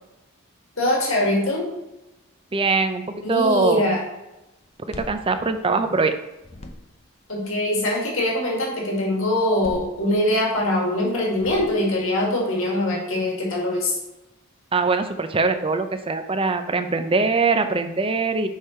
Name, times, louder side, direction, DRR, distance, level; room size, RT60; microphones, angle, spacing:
voice 1, 0.8-1.7 3.2-4.0 7.3-14.0, left 1 dB, 65° left, -2 dB, 2.0 m, -23 dB
voice 2, 2.5-3.9 4.9-6.1 14.7-18.5, right 4 dB, 25° right, 8 dB, 0.5 m, -22 dB
sound 1, 4.6-6.1 6.4-7.2 9.3-10.6 11.3-12.1, left 1 dB, 30° left, 0.7 m, -41 dB
6.4 x 5.2 x 4.3 m, 0.97 s
head